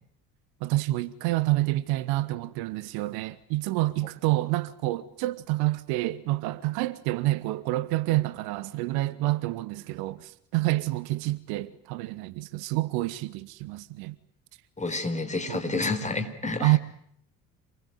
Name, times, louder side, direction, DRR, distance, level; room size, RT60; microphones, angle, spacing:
voice 1, 0.6-14.1 15.5-15.8 16.6-16.8, right 18 dB, 55° right, 1.1 m, -28 dB
voice 2, 14.8-16.8, left 3 dB, 15° left, 4.3 m, -29 dB
27.5 x 21.0 x 9.5 m
figure-of-eight pair, 55°, 45 cm